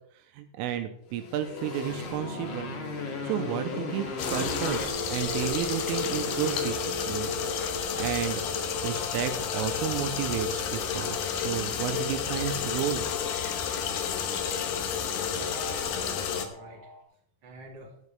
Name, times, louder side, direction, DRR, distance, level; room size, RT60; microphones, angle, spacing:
voice 1, 0.3-2.8 3.2-7.3 7.9-8.4 8.8-13.1, right 10 dB, 85° right, 7 dB, 3.4 m, -32 dB
Motorcycle, 1.1-8.5, left 4 dB, 50° left, 2.6 m, -39 dB
sound 1, 1.5-17.0, left 2 dB, 65° left, 6.3 m, -40 dB
sound 2, 4.2-16.5, left 7 dB, 85° left, 1.9 m, -31 dB
voice 2, 15.3-16.9 17.4-17.9, right 3 dB, 25° right, -2 dB, 2.7 m, -46 dB
16.5 x 11.0 x 3.5 m, 0.66 s
omnidirectional pair, 5.9 m